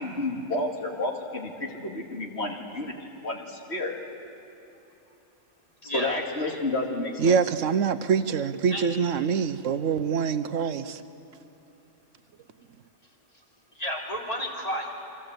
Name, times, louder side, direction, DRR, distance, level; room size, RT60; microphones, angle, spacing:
voice 1, 0.0-2.9 3.2-4.0 5.8-7.4, left 2 dB, 55° left, 2.5 m, -30 dB
voice 2, 5.8-6.1 8.7-8.9 13.8-14.9, equal, 30° left, 3.5 m, -31 dB
voice 3, 7.2-11.0, right 6 dB, 75° right, 1.2 m, -25 dB
29.5 x 23.5 x 8.1 m
omnidirectional pair, 1.3 m